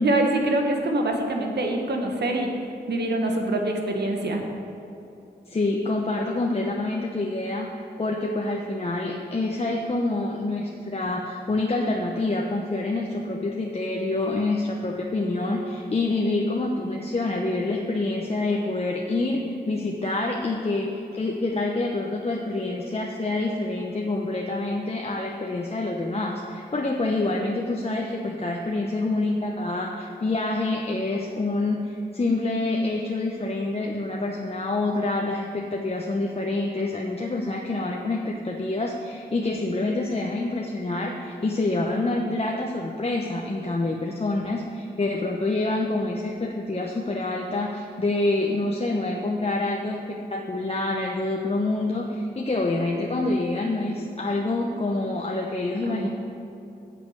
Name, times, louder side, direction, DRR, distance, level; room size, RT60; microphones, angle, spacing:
voice 1, 0.0-2.5 2.9-4.4 55.8-56.1, right 2 dB, 70° right, 2 dB, 1.5 m, -25 dB
voice 2, 5.5-56.1, left 2 dB, 35° left, 0 dB, 0.9 m, -27 dB
8.1 x 7.6 x 6.5 m, 2.8 s
cardioid pair, 50°, 18 cm